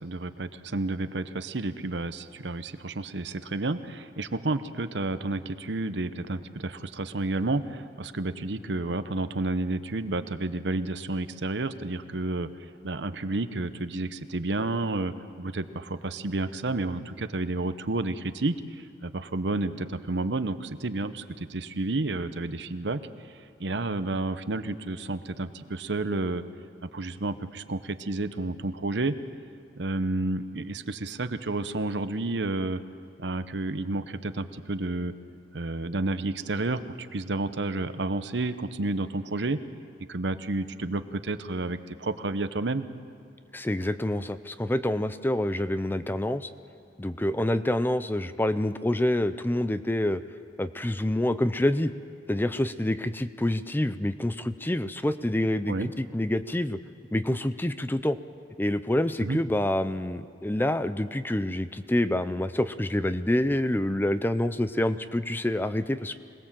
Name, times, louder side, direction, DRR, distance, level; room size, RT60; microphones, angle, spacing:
voice 1, 0.0-12.5 12.8-23.1 23.6-26.4 26.8-29.2 29.7-32.8 33.2-35.1 35.5-39.6 40.1-42.9 55.7-55.9 59.2-59.4, right 2 dB, 65° right, 11 dB, 0.9 m, -30 dB
voice 2, 43.5-46.5 47.0-50.2 50.6-51.9 52.3-56.8 57.1-58.2 58.6-66.2, left 1 dB, 10° left, 12 dB, 0.5 m, -27 dB
26.0 x 19.0 x 7.5 m, 2.3 s
head